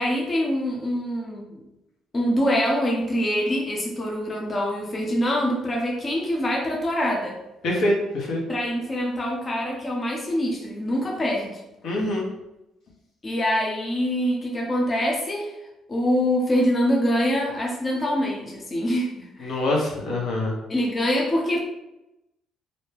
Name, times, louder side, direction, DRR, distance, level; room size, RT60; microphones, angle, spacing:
voice 1, 0.0-1.6 2.1-7.4 8.5-11.6 13.2-15.5 15.9-19.6 20.7-21.6, equal, 35° left, -1 dB, 0.6 m, -24 dB
voice 2, 7.6-8.4 11.8-12.2 19.4-20.5, left 1 dB, 70° left, -2 dB, 0.8 m, -24 dB
2.6 x 2.2 x 3.1 m, 0.93 s
supercardioid pair, 65°, 0 cm